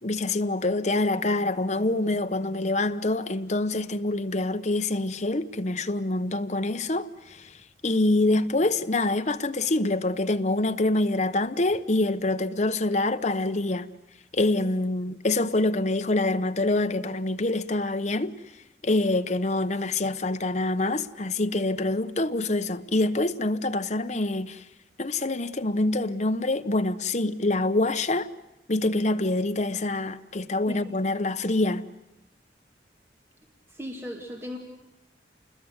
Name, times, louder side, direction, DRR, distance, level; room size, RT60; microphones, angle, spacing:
voice 1, 0.0-13.9 14.3-18.3 18.8-24.6 25.0-28.3 28.7-31.9, left 2 dB, 40° left, 1.0 m, -26 dB
voice 2, 33.7-34.6, left 1 dB, 15° right, 2.3 m, -36 dB
28.5 x 21.0 x 8.1 m
head